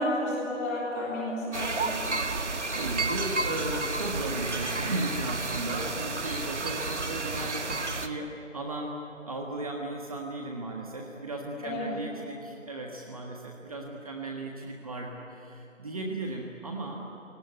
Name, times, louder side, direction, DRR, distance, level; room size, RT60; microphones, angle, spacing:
voice 1, 0.0-2.2 11.6-12.0, left 1 dB, 10° left, -5 dB, 3.7 m, -31 dB
sound 1, 1.5-8.1, right 3 dB, 60° right, 1.8 m, -31 dB
voice 2, 2.7-17.1, right 2 dB, 25° right, 0 dB, 1.6 m, -36 dB
29.5 x 18.5 x 9.4 m, 2.9 s
figure-of-eight pair, 165°, 39 cm